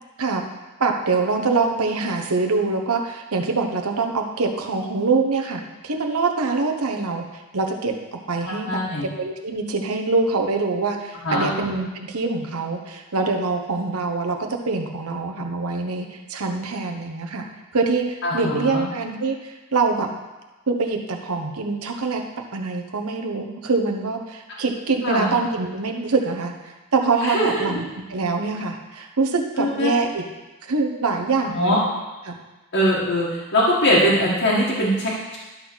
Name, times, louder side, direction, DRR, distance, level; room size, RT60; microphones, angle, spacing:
voice 1, 0.8-8.8 9.2-17.5 17.7-20.1 20.7-22.2 22.5-30.2 30.7-31.8 32.2-32.4, right 3 dB, 75° right, 3 dB, 1.0 m, -24 dB
voice 2, 8.4-9.1 11.2-11.5 18.2-18.8 25.0-25.3 27.2-27.8 29.6-29.9 31.5-31.8 32.7-35.4, equal, 60° left, -7 dB, 1.8 m, -21 dB
11.5 x 4.0 x 6.2 m, 1.1 s
head